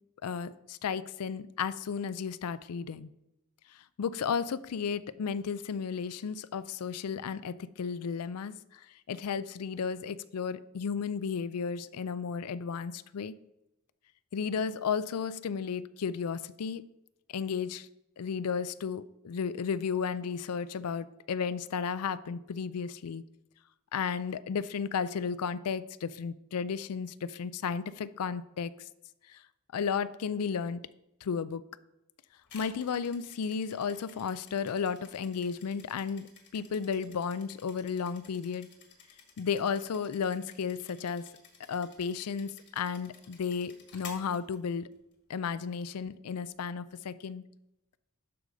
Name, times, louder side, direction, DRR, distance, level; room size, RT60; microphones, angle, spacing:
voice 1, 0.2-3.1 3.7-13.3 14.3-16.8 17.3-17.9 18.2-23.2 23.9-28.9 29.3-29.4 29.7-30.8 31.2-31.6 32.5-36.3 36.5-38.7 39.4-41.3 41.7-44.9 45.3-47.4, left 6 dB, 90° left, 16 dB, 0.4 m, -33 dB
sound 1, 32.5-45.1, left 6 dB, 50° left, 1.6 m, -54 dB
11.5 x 4.8 x 3.9 m, 0.90 s
head